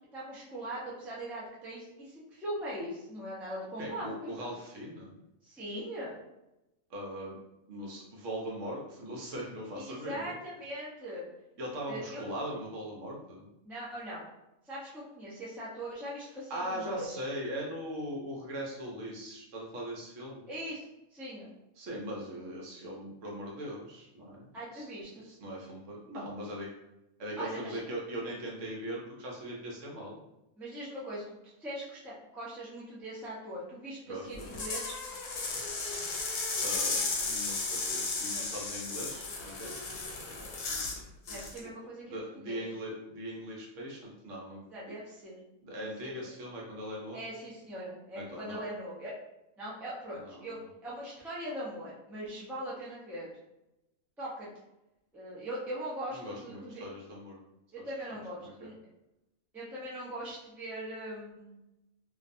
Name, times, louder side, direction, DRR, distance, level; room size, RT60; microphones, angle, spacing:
voice 1, 0.1-4.5 5.4-6.2 9.8-11.3 11.9-12.2 13.6-14.2 14.7-17.2 20.5-21.5 24.5-25.3 27.4-27.8 30.6-34.9 38.3-38.5 38.9-39.2 40.4-40.5 41.2-42.6 44.7-45.4 46.0-46.3 47.1-49.1 49.6-53.3 54.2-54.5 55.1-56.8 57.7-58.7 59.5-61.6, right 1 dB, 5° right, -7 dB, 0.3 m, -41 dB
voice 2, 3.8-5.1 6.9-7.4 7.7-10.3 11.6-13.5 16.5-20.4 21.8-24.5 24.7-24.8 25.2-26.7 27.2-30.2 34.1-34.5 36.6-39.7 42.1-44.6 45.6-47.2 48.1-48.7 50.2-50.5 56.1-57.4 57.8-57.9 58.4-58.7, equal, 70° right, -3 dB, 1.0 m, -40 dB
sound 1, 34.3-41.0 41.3-41.6, left 3 dB, 80° left, 1.0 m, -34 dB
2.5 x 2.3 x 2.5 m, 0.92 s
omnidirectional pair, 1.4 m